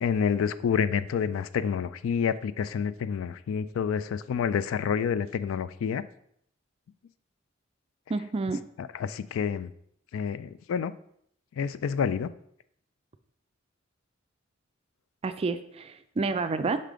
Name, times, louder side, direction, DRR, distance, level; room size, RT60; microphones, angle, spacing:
voice 1, 0.0-6.0 8.8-9.7 10.1-10.9 11.6-12.3, left 7 dB, 90° left, 15 dB, 0.3 m, -28 dB
voice 2, 8.1-8.6 15.2-16.8, right 3 dB, 30° right, 10 dB, 0.3 m, -29 dB
5.6 x 5.0 x 3.7 m, 0.70 s
head